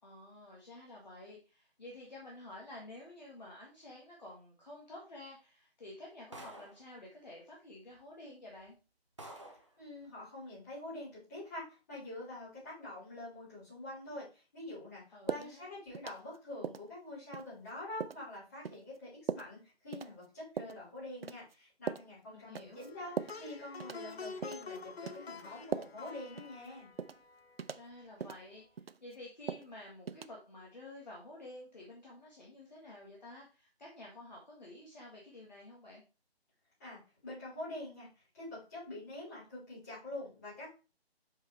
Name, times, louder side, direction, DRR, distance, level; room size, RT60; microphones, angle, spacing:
voice 1, 0.0-8.8 15.1-15.7 22.3-22.9 27.7-36.0, left 1 dB, 45° left, -3 dB, 1.7 m, -51 dB
sound 1, 6.3-6.9 7.9-8.0 8.6-8.7 9.2-9.7, right 1 dB, 30° right, 0.8 m, -49 dB
voice 2, 9.8-26.9 36.8-38.1 38.3-40.7, left 1 dB, 15° left, -9 dB, 3.9 m, -46 dB
sound 2, 15.3-15.5 15.9-16.4 16.6-16.9 17.3-17.5 18.0-18.2 18.6-18.8 19.3-19.5 19.9-20.1 20.6-20.8 21.2-21.5 21.9-22.1 22.6-22.9 23.2-23.4 23.8-24.1 24.4-24.7 25.1-25.2 25.7-26.1 26.4-26.5 27.0-27.2 27.6-27.8 28.2-28.4 28.8-29.1 29.5-29.7 30.1-30.3, right 6 dB, 70° right, 0.5 m, -39 dB
Plucked string instrument, 22.7-28.0, left 4 dB, 70° left, 0.8 m, -48 dB
7.5 x 4.9 x 3.2 m, 0.32 s
figure-of-eight pair, 175°, 32 cm